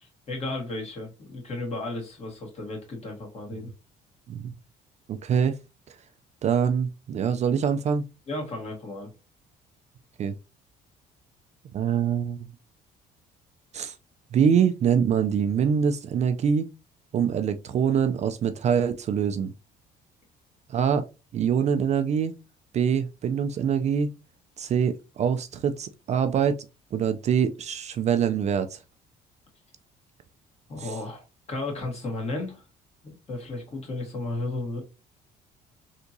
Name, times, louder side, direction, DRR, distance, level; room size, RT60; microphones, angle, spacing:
voice 1, 0.0-3.7 8.3-9.1 30.7-32.6 33.0-34.8, left 2 dB, 40° left, 1.8 m, -34 dB
voice 2, 5.1-5.6 6.4-8.0 10.2-10.3 11.7-12.5 13.7-13.9 14.3-16.7 17.1-19.5 20.7-21.0 21.3-22.3 22.7-24.1 24.6-26.6 26.9-28.8 30.8-30.9, right 7 dB, 40° right, 0.4 m, -24 dB
3.5 x 2.8 x 2.6 m
cardioid pair, 110°, 17 cm